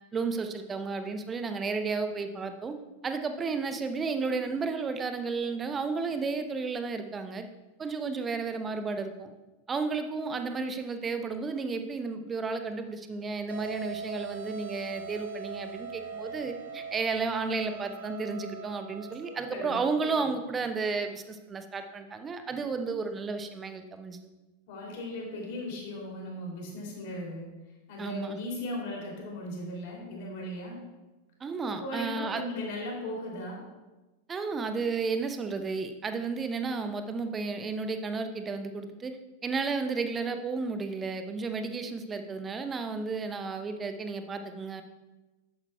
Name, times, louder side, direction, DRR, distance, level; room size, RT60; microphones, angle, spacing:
voice 1, 0.1-2.7 3.0-7.5 7.8-9.3 9.7-24.2 28.0-28.4 31.4-32.4 34.3-39.1 39.4-44.8, right 4 dB, 20° right, 8 dB, 0.7 m, -32 dB
sound 1, 13.5-20.4, right 5 dB, 60° right, 1.0 m, -42 dB
voice 2, 19.2-19.7 20.0-20.1 24.7-27.5 27.9-30.8 31.8-33.6, left 1 dB, 50° left, -2 dB, 2.9 m, -37 dB
11.0 x 8.7 x 2.3 m, 1.1 s
figure-of-eight pair, 90°, 0 cm